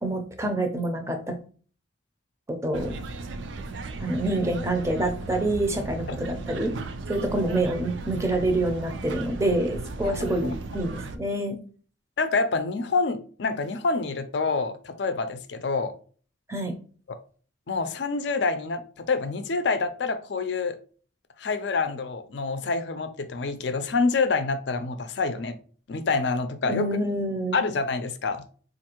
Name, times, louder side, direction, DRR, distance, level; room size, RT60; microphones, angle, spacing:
voice 1, 0.0-1.4 2.5-2.9 4.0-6.7 7.1-11.6 16.5-16.7 26.6-27.7, right 1 dB, 15° right, 5 dB, 0.5 m, -27 dB
sound 1, 2.7-11.2, right 3 dB, 70° right, 0.4 m, -36 dB
voice 2, 10.0-10.5 12.2-15.9 17.7-20.8 21.4-25.6 25.9-26.9 27.5-28.4, left 4 dB, 60° left, 9 dB, 0.5 m, -27 dB
4.3 x 2.5 x 2.9 m, 0.41 s
head